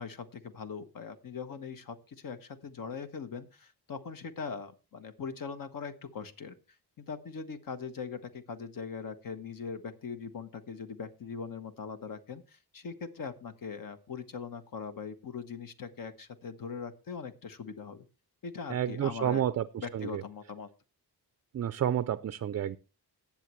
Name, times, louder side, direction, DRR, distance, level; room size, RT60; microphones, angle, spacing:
voice 1, 0.0-6.6 7.0-18.1 18.4-19.4 19.8-20.7, left 5 dB, 55° left, 1.2 m, -41 dB
voice 2, 18.7-19.6 19.9-20.1 21.5-22.8, right 10 dB, 45° right, 0.4 m, -30 dB
17.5 x 7.3 x 3.1 m
wide cardioid pair, 135°, 39 cm